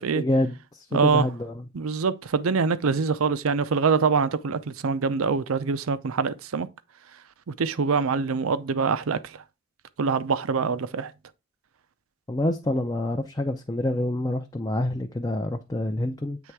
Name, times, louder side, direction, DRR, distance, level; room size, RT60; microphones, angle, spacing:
voice 1, 0.1-1.6 12.3-16.4, left 1 dB, 20° left, 0.4 m, -27 dB
voice 2, 0.9-1.3 1.7-6.7 7.5-9.4 10.0-11.1, right 5 dB, 80° right, 0.5 m, -24 dB
8.1 x 3.3 x 4.6 m
head